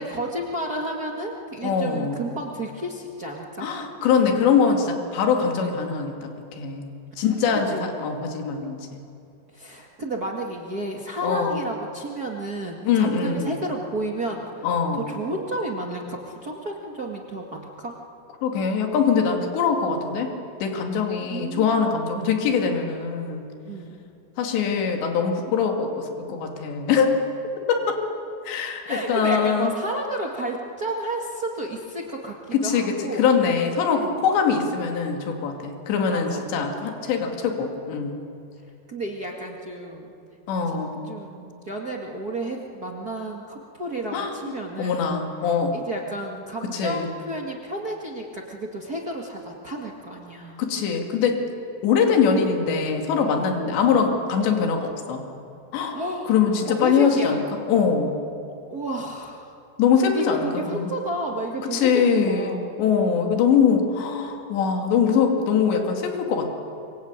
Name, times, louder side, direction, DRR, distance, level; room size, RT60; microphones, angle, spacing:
voice 1, 0.0-3.7 7.1-7.2 7.7-7.9 9.5-14.7 14.9-18.0 21.3-22.5 23.6-24.0 28.8-33.2 33.9-34.2 34.5-34.6 36.1-36.4 38.9-40.1 40.7-40.8 41.1-45.0 45.7-50.6 53.6-53.8 55.9-56.3 56.7-57.4 58.7-59.5 60.1-63.2, right 1 dB, 45° right, 0 dB, 1.2 m, -32 dB
voice 2, 1.6-2.2 3.6-6.3 6.6-6.9 7.2-9.0 11.2-11.6 12.9-13.6 14.6-15.1 18.4-20.3 20.6-23.4 24.4-27.2 27.7-28.0 28.5-29.7 32.5-38.2 40.5-41.0 44.1-44.3 44.8-45.8 46.7-47.1 50.6-51.4 51.8-55.2 55.7-56.0 56.3-57.4 57.7-58.1 59.8-60.5 60.7-60.9 61.7-66.5, left 6 dB, 80° left, 3 dB, 4.5 m, -22 dB
25.0 x 24.0 x 9.0 m, 2.6 s
omnidirectional pair, 5.0 m